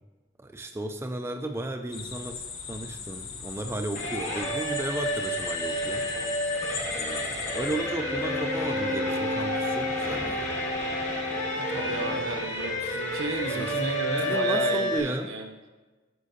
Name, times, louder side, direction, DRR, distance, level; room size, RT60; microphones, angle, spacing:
voice 1, 0.4-6.1 6.9-10.5 13.5-13.7 14.2-15.3, right 1 dB, 10° right, 5 dB, 0.3 m, -34 dB
sound 1, 1.9-7.8, left 6 dB, 70° left, 0.9 m, -39 dB
sound 2, 3.9-15.0, equal, 35° left, 1.3 m, -30 dB
Bowed string instrument, 8.0-12.3, left 2 dB, 5° left, 0.8 m, -32 dB
voice 2, 11.6-15.4, right 2 dB, 85° right, 3 dB, 1.1 m, -32 dB
12.0 x 5.3 x 2.7 m, 1.2 s
head